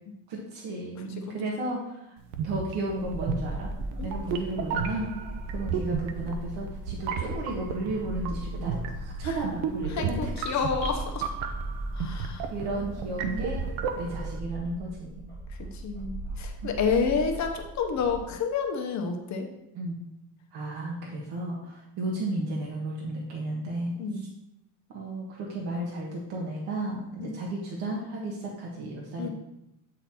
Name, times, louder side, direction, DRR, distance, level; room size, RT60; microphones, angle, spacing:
voice 1, 0.3-2.1 2.4-3.7 4.0-5.1 5.5-10.6 12.0-12.2 12.5-13.6 14.0-15.3 19.7-20.0 20.5-23.9 24.9-29.3, right 2 dB, 65° right, -3 dB, 1.5 m, -33 dB
voice 2, 1.0-1.3 4.0-4.1 9.2-9.3 9.9-11.3 11.9-12.5 15.6-19.5 24.0-24.3 27.2-27.3 29.2-29.3, left 5 dB, 40° left, 4 dB, 0.9 m, -29 dB
sound 1, 2.3-14.4, right 6 dB, 85° right, 0.8 m, -34 dB
sound 2, 3.0-18.2, right 1 dB, 20° right, 2.3 m, -38 dB
8.3 x 4.0 x 4.3 m, 0.86 s
cardioid pair, 135°, 42 cm